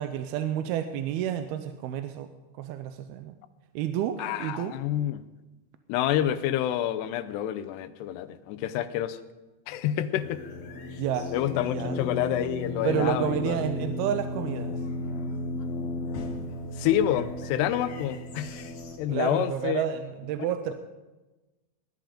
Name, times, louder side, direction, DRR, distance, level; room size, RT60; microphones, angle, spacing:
voice 1, 0.0-2.3 2.6-3.3 3.8-4.7 11.0-11.3 11.7-12.0 12.8-14.7 19.1-20.7, right 10 dB, 80° right, 9 dB, 2.5 m, -30 dB
voice 2, 4.2-5.2 5.9-9.2 9.7-10.4 11.3-13.6 14.0-14.1 16.8-18.7 19.0-19.8, left 11 dB, 90° left, 10 dB, 2.9 m, -28 dB
sound 1, 10.2-19.0, left 2 dB, 55° left, 2.2 m, -34 dB
19.5 x 11.5 x 5.1 m, 1.1 s
omnidirectional pair, 4.7 m